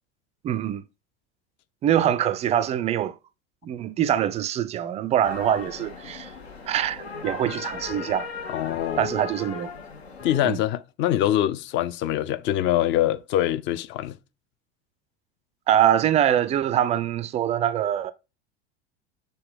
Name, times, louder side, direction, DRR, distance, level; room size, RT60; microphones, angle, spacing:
voice 1, 0.4-0.8 1.8-3.1 3.6-6.3 6.7-8.3 9.0-9.7 10.4-10.6 15.7-18.1, right 10 dB, 20° right, 0.3 m, -24 dB
sound 1, 5.2-10.5, left 4 dB, 75° left, 1.1 m, -37 dB
voice 2, 8.5-9.1 10.2-14.1, left 12 dB, 35° left, 0.6 m, -24 dB
6.6 x 4.0 x 3.6 m
figure-of-eight pair, 75°, 32 cm